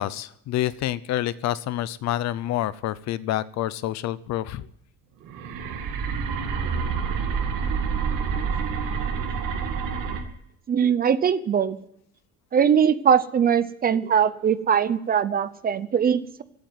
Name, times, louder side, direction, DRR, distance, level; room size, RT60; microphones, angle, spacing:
voice 1, 0.0-4.7, left 13 dB, 55° left, 17 dB, 0.7 m, -28 dB
sound 1, 5.2-10.2, right 6 dB, 70° right, 2.3 m, -27 dB
voice 2, 10.7-11.8 12.5-16.4, right 8 dB, 25° right, 15 dB, 0.6 m, -21 dB
16.0 x 8.9 x 9.4 m, 0.72 s
cardioid pair, 165°, 33 cm